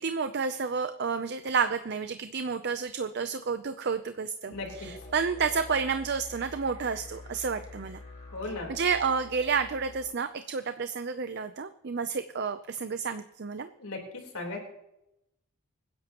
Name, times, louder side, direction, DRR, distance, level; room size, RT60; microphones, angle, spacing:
voice 1, 0.0-8.0 8.7-13.7, right 5 dB, 50° right, 10 dB, 0.5 m, -30 dB
voice 2, 4.5-4.9 8.3-8.7 13.8-14.6, left 2 dB, 80° left, 0 dB, 3.9 m, -37 dB
sound 1, 4.5-10.1, left 2 dB, 30° left, 3.6 m, -46 dB
26.0 x 10.5 x 3.0 m, 0.84 s
head